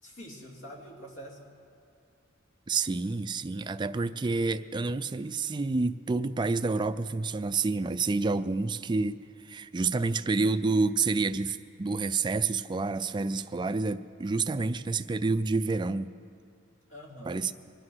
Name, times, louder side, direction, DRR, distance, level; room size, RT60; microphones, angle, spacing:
voice 1, 0.0-1.5 16.9-17.4, equal, 70° left, -1 dB, 2.8 m, -45 dB
voice 2, 2.7-9.2 9.4-16.1 17.3-17.5, right 3 dB, 20° right, 11 dB, 0.4 m, -28 dB
23.5 x 9.7 x 6.2 m, 2.4 s
head